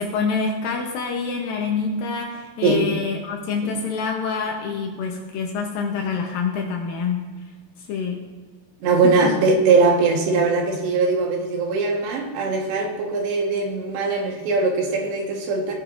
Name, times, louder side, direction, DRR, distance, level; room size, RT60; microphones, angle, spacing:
voice 1, 0.0-7.2 7.9-8.2 9.0-9.3, left 5 dB, 75° left, 1 dB, 2.3 m, -26 dB
voice 2, 8.8-15.7, right 4 dB, 90° right, 0 dB, 3.6 m, -21 dB
17.0 x 9.0 x 2.5 m, 1.3 s
omnidirectional pair, 4.8 m